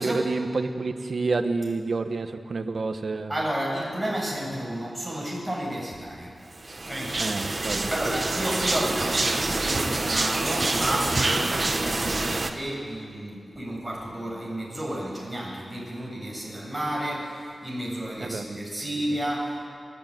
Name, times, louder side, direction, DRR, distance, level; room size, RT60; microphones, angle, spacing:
voice 1, 0.0-3.3 7.2-7.9 18.2-18.6, right 3 dB, 55° right, 7 dB, 1.5 m, -28 dB
voice 2, 3.3-6.3 6.7-7.2 7.9-19.7, right 1 dB, 5° right, -4 dB, 7.9 m, -31 dB
sound 1, 6.6-12.5, right 2 dB, 35° right, 1.6 m, -26 dB
29.5 x 13.0 x 9.4 m, 2.2 s
wide cardioid pair, 105°, 0 cm